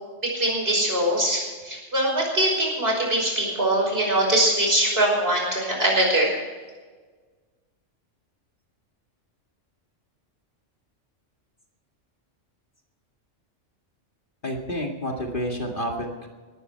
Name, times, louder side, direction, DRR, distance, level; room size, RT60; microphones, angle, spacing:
voice 1, 0.2-6.4, right 1 dB, 50° right, -1 dB, 5.9 m, -22 dB
voice 2, 14.4-16.3, equal, 40° left, 1 dB, 2.3 m, -29 dB
19.0 x 13.5 x 4.6 m, 1.4 s
omnidirectional pair, 1.3 m